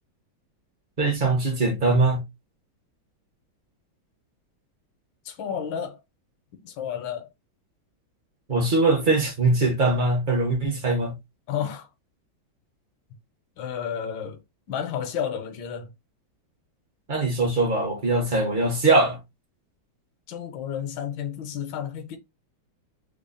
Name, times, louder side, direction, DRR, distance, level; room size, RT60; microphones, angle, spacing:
voice 1, 1.0-2.2 8.5-11.2 17.1-19.2, right 2 dB, 45° right, 0.6 m, -22 dB
voice 2, 5.2-6.0 6.6-7.3 11.5-11.9 13.6-14.4 14.7-15.9 20.3-22.2, left 8 dB, 70° left, 1.4 m, -31 dB
3.7 x 2.0 x 3.8 m
omnidirectional pair, 2.2 m